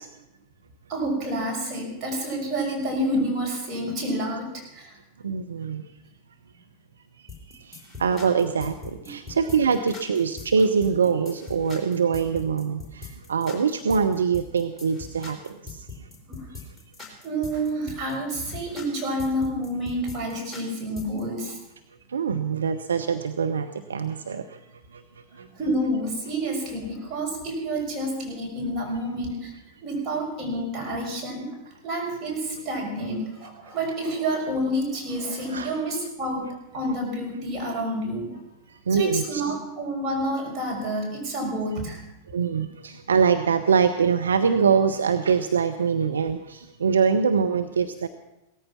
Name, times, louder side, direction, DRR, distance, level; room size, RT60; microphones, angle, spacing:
voice 1, 0.9-5.0 9.0-9.2 16.3-16.5 17.2-21.6 25.3-29.5 29.8-31.6 31.8-36.5 36.7-38.4 38.9-42.0, right 1 dB, 30° right, 0 dB, 5.9 m, -29 dB
voice 2, 5.2-5.8 8.0-15.6 22.1-24.4 35.5-35.7 38.9-39.4 42.3-48.1, right 6 dB, 70° right, 7 dB, 0.7 m, -23 dB
sound 1, 7.3-21.2, left 4 dB, 5° left, 4.1 m, -41 dB
17.0 x 14.0 x 5.9 m, 0.86 s
figure-of-eight pair, 90°, 0 cm